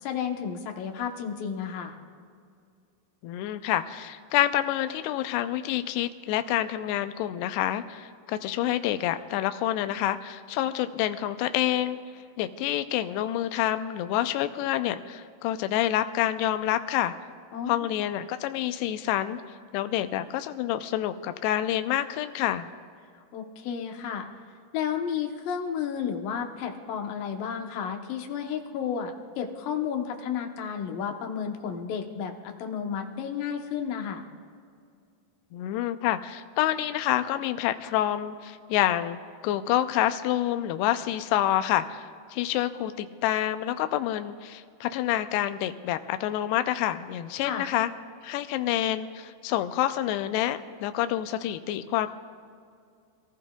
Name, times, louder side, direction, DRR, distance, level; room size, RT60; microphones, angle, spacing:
voice 1, 0.0-2.0 17.5-17.9 23.3-24.3 24.7-34.2 47.4-47.7, left 7 dB, 70° left, 3 dB, 2.5 m, -32 dB
voice 2, 3.2-12.0 12.4-17.2 17.7-19.4 19.7-22.7 35.5-39.2 39.4-47.9 48.2-52.1, left 12 dB, 85° left, 10 dB, 2.7 m, -27 dB
27.0 x 15.5 x 2.3 m, 2.3 s
omnidirectional pair, 4.8 m